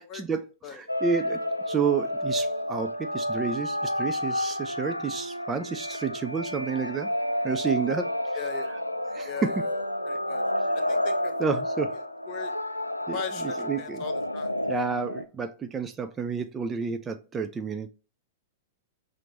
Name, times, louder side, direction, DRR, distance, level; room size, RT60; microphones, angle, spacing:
voice 1, 0.0-1.4 1.7-7.1 7.4-8.1 8.7-8.8 9.1-9.7 11.4-12.0 13.1-14.0 14.7-17.9, right 6 dB, 20° right, 0.3 m, -30 dB
sound 1, 0.9-15.2, left 1 dB, 90° left, 0.3 m, -30 dB
voice 2, 8.3-8.7 9.2-10.4 10.7-11.6 12.3-12.5 13.1-14.5, left 7 dB, 35° left, 0.7 m, -39 dB
5.8 x 2.5 x 2.9 m
figure-of-eight pair, 100°, 0 cm